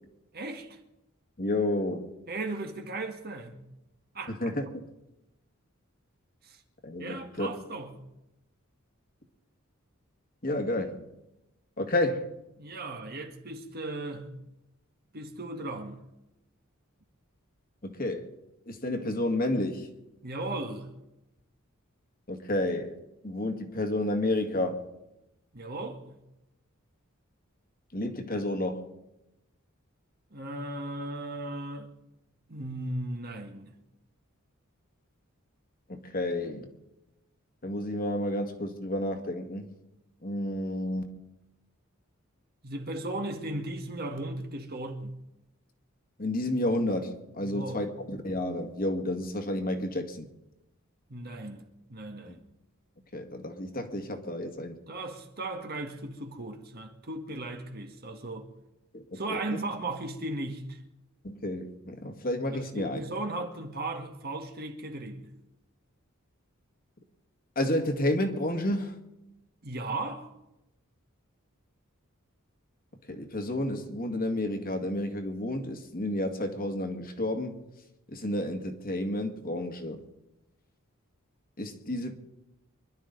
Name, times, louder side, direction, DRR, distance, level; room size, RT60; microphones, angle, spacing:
voice 1, 0.3-0.8 2.3-3.6 4.1-4.5 6.5-6.6 7.0-7.9 12.6-14.3 15.1-16.1 20.2-20.9 25.5-26.2 30.3-31.9 32.5-33.7 42.6-45.2 47.4-47.9 51.1-52.4 54.9-58.5 59.1-60.8 62.5-65.3 69.6-70.3, right 2 dB, 50° right, 1.8 m, -36 dB
voice 2, 1.4-2.1 4.4-4.9 6.8-7.5 10.4-11.0 11.8-12.3 17.8-18.3 18.7-19.9 22.3-23.0 23.2-24.8 27.9-28.9 35.9-36.7 37.6-39.7 40.2-41.0 46.2-50.3 52.3-52.4 53.1-54.8 58.9-59.4 61.2-63.0 67.6-68.9 73.1-77.6 78.1-80.0 81.6-82.1, left 1 dB, 45° left, 1.9 m, -31 dB
25.5 x 11.5 x 4.0 m
head